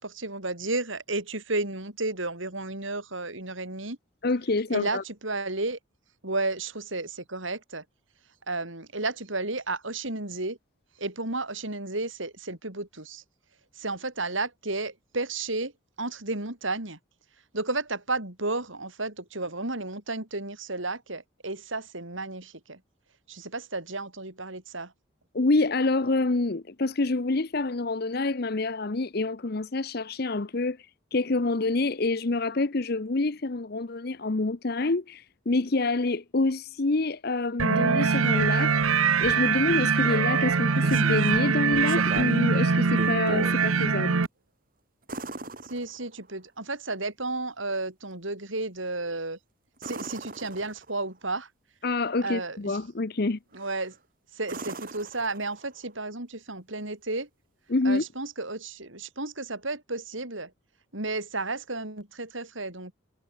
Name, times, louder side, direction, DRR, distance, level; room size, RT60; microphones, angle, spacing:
voice 1, 0.0-4.0 4.7-5.8 6.2-7.8 8.5-10.6 11.0-13.2 13.8-15.7 16.0-17.0 17.5-22.8 23.3-24.9 45.6-49.4 49.8-51.5 52.2-52.8 53.5-54.0 54.3-57.3 57.8-60.5 60.9-62.9, right 2 dB, 70° right, 5.7 m, -32 dB
voice 2, 4.2-5.0 25.3-30.8 31.1-44.2 51.8-53.4 57.7-58.0, left 3 dB, 50° left, 0.8 m, -27 dB
sound 1, 37.6-44.3, right 5 dB, 90° right, 0.9 m, -23 dB
sound 2, 40.5-41.4 41.9-42.5 42.9-43.6 45.1-46.3 49.8-51.1 53.6-53.9 54.4-55.8 58.0-58.1, right 2 dB, 45° right, 3.7 m, -39 dB
head